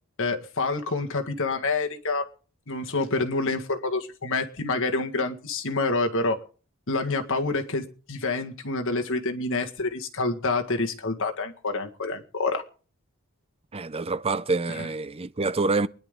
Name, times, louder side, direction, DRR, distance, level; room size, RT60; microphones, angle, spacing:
voice 1, 0.2-2.3 2.7-6.4 6.9-12.6 14.8-14.9, left 3 dB, 60° left, 1.9 m, -27 dB
voice 2, 13.7-15.9, right 3 dB, 25° right, 0.6 m, -26 dB
24.0 x 10.5 x 3.8 m
head